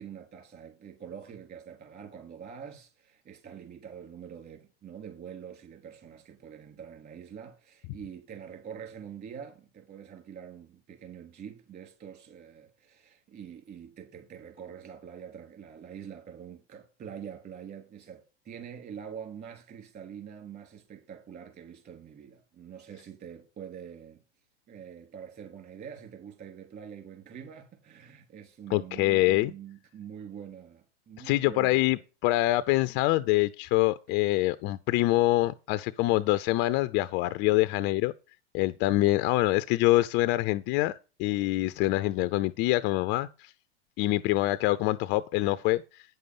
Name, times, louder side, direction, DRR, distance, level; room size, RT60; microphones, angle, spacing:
voice 1, 0.0-24.2 24.7-32.0, right 8 dB, 30° right, 3.6 m, -45 dB
voice 2, 28.7-29.5 31.2-38.1 38.5-40.9 41.2-43.5 44.0-46.0, left 17 dB, 35° left, 0.5 m, -25 dB
9.3 x 6.8 x 5.4 m
hypercardioid pair, 110°, 31 cm